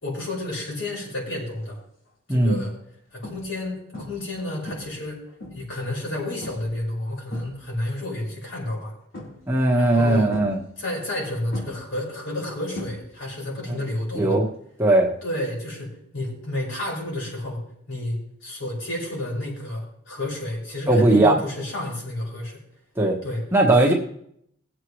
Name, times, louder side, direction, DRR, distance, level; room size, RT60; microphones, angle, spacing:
voice 1, 0.0-1.8 2.3-2.7 3.1-5.2 5.5-8.9 9.7-10.3 10.8-14.4 15.2-17.6 17.9-22.6 23.2-23.4, left 1 dB, 65° left, -3 dB, 5.2 m, -30 dB
sound 1, 1.6-1.9 2.5-2.6 3.2-3.7 3.9-4.3 4.7-5.8 6.4-6.8 7.1-7.9 9.1-9.7 10.3-11.2 11.5-13.4 13.7-14.1 16.2-16.3, left 1 dB, 85° left, 3.8 m, -39 dB
voice 2, 2.3-2.6 9.5-10.6 14.1-14.5 14.8-15.1 20.9-21.4 23.0-23.2 23.5-23.9, right 2 dB, 10° right, -2 dB, 1.3 m, -18 dB
19.5 x 7.6 x 3.2 m, 0.70 s
head